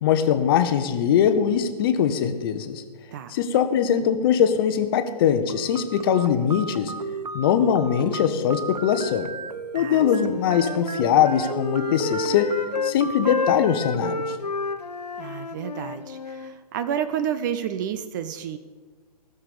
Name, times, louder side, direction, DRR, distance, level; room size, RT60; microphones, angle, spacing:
voice 1, 0.0-2.8 3.3-6.9 7.3-9.3 9.7-12.5 12.8-14.4, left 8 dB, 35° left, 9 dB, 0.9 m, -21 dB
sound 1, 5.5-13.5, right 4 dB, 85° right, 0.7 m, -35 dB
voice 2, 9.7-10.1 15.2-18.6, right 9 dB, 30° right, 12 dB, 0.6 m, -30 dB
Wind instrument woodwind instrument, 10.1-13.0 13.2-16.5, left 4 dB, 80° left, 0.8 m, -30 dB
16.0 x 6.9 x 6.9 m, 1.3 s
figure-of-eight pair, 130°, 20 cm